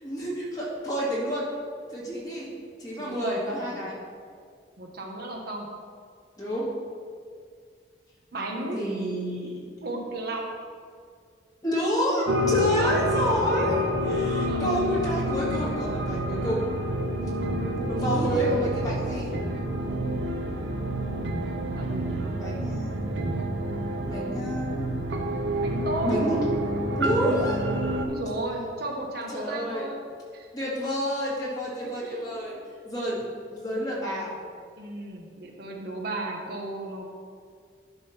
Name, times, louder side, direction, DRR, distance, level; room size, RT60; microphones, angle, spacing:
voice 1, 0.0-1.5 1.9-2.5 2.8-3.9 6.4-6.7 8.3-9.6 11.6-16.6 17.8-19.3 22.4-23.0 24.0-24.8 26.0-26.4 27.0-27.6 29.3-29.8 30.5-32.5 32.8-33.2 33.5-34.3, equal, 20° left, -7 dB, 2.4 m, -29 dB
voice 2, 2.9-3.9 4.8-5.7 8.3-9.0 9.8-10.4 12.8-13.0 14.5-14.7 18.1-18.8 21.8-22.4 25.6-26.2 28.0-30.0 30.3-30.5 32.0-32.5 34.8-37.1, right 2 dB, 60° right, 0 dB, 1.1 m, -35 dB
sound 1, 12.3-28.1, equal, 85° right, 0.8 m, -28 dB
11.0 x 3.9 x 5.9 m, 2.1 s
head